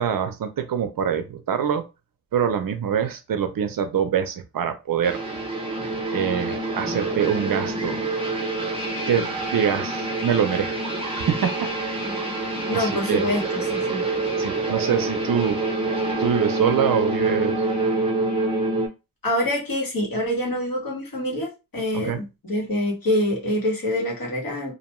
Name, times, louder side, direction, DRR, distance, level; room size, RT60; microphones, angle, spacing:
voice 1, 0.0-1.8 2.3-5.2 6.1-8.0 9.1-11.5 11.8-12.3 12.7-13.2 14.4-15.6 16.2-17.6 22.0-22.2, right 8 dB, 65° right, 0.5 m, -24 dB
sound 1, 5.0-18.9, right 2 dB, 15° right, 0.7 m, -26 dB
voice 2, 12.7-14.0 19.2-24.7, left 1 dB, 65° left, 1.4 m, -25 dB
2.5 x 2.2 x 3.0 m
wide cardioid pair, 130°, 38 cm